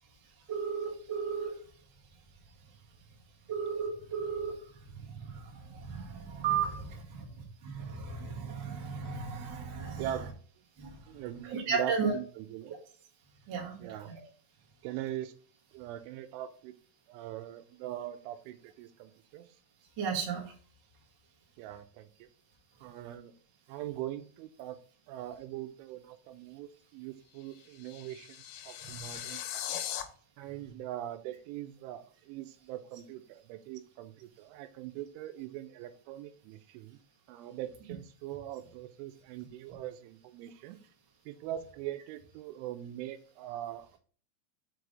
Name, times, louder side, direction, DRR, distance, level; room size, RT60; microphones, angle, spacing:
voice 1, 0.5-1.6 3.5-10.1 10.8-12.1 13.5-14.2 20.0-20.5 28.8-29.2 30.6-30.7, right 6 dB, 55° right, -3 dB, 1.2 m, -35 dB
voice 2, 10.0-10.3 11.1-12.8 13.5-14.1 14.8-15.3 15.7-16.7 17.1-19.5 21.6-22.3 22.8-23.3 23.7-24.8 25.1-28.4 28.6-29.9 30.4-37.0 37.3-40.8 41.3-44.0, right 12 dB, 85° right, 10 dB, 3.0 m, -42 dB
sound 1, 27.3-30.0, left 11 dB, 80° left, 3.2 m, -39 dB
6.9 x 4.8 x 3.8 m, 0.43 s
omnidirectional pair, 5.5 m